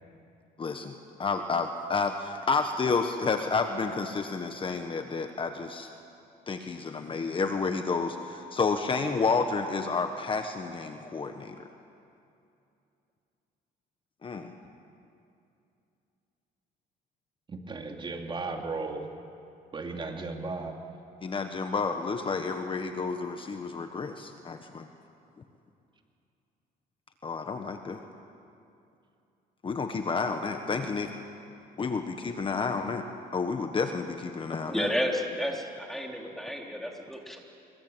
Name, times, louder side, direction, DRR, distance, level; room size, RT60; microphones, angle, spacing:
voice 1, 0.6-5.9 6.5-11.7 14.2-14.5 21.2-24.9 27.2-28.0 29.6-31.1 31.8-33.0 33.3-34.9, left 4 dB, 30° left, 6 dB, 1.5 m, -30 dB
voice 2, 17.5-19.1 19.7-20.7, right 3 dB, 30° right, 3 dB, 2.7 m, -35 dB
voice 3, 34.7-37.4, equal, ahead, 0 dB, 4.2 m, -31 dB
26.5 x 23.0 x 9.3 m, 2.6 s
cardioid pair, 110°, 17 cm